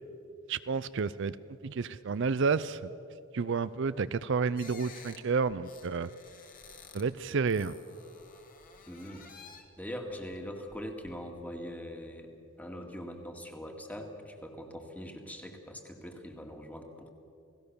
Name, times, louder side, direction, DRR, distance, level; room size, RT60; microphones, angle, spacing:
voice 1, 0.5-1.4 1.6-2.9 3.3-6.1 6.9-7.8, right 5 dB, 55° right, 14 dB, 0.5 m, -30 dB
sound 1, 4.6-7.1 7.4-9.8 10.3-11.1, left 5 dB, 40° left, 2.2 m, -52 dB
voice 2, 8.9-9.3 9.8-12.3 12.6-17.1, equal, 5° left, 3 dB, 2.1 m, -42 dB
29.5 x 18.0 x 6.9 m, 2.7 s
head